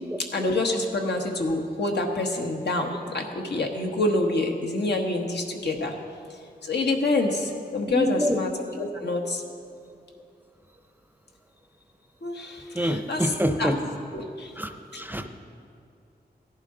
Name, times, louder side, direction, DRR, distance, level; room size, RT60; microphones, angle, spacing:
voice 1, 0.3-5.9 6.6-9.4 12.2-13.7 14.1-14.5, left 2 dB, 80° left, 2 dB, 1.3 m, -27 dB
voice 2, 7.9-8.4 12.8-13.7 14.6-14.7 14.9-15.3, equal, 10° right, 7 dB, 0.5 m, -26 dB
16.5 x 11.0 x 3.8 m, 2.5 s
wide cardioid pair, 125°, 17 cm